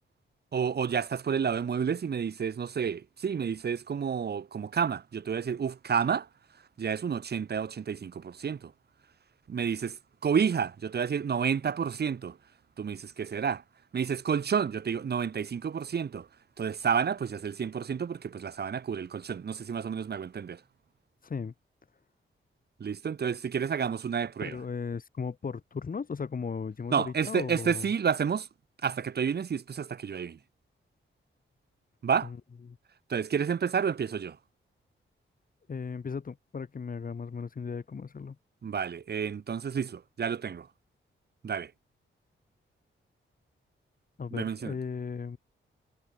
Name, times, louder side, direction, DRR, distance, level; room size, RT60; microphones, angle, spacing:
voice 1, 0.5-6.3 6.8-8.7 9.5-10.0 10.2-12.4 12.8-13.6 13.9-16.3 16.6-20.6 22.8-24.6 26.9-28.5 28.8-30.4 32.0-32.3 33.1-34.4 38.6-40.7 41.4-41.7 44.3-44.7, right 7 dB, 50° right, 1.8 m, -30 dB
voice 2, 21.2-21.5 24.4-27.9 32.2-32.4 32.7-32.8 35.7-38.4 44.2-45.4, left 5 dB, 45° left, 5.4 m, -36 dB
wide cardioid pair, 150°, 21 cm